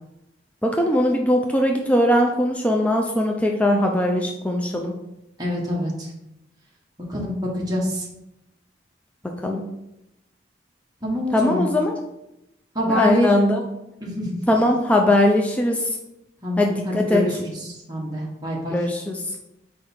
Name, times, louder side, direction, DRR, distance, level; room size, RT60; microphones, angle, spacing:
voice 1, 0.6-4.9 9.4-9.6 11.3-11.9 12.9-13.6 14.5-15.9 16.6-17.2 18.7-19.2, left 1 dB, 5° left, 1 dB, 0.4 m, -20 dB
voice 2, 5.4-6.1 7.1-8.1 11.0-11.7 12.7-13.5 14.0-14.4 16.4-18.8, left 1 dB, 20° right, -4 dB, 1.3 m, -25 dB
5.1 x 4.6 x 4.3 m, 0.89 s
head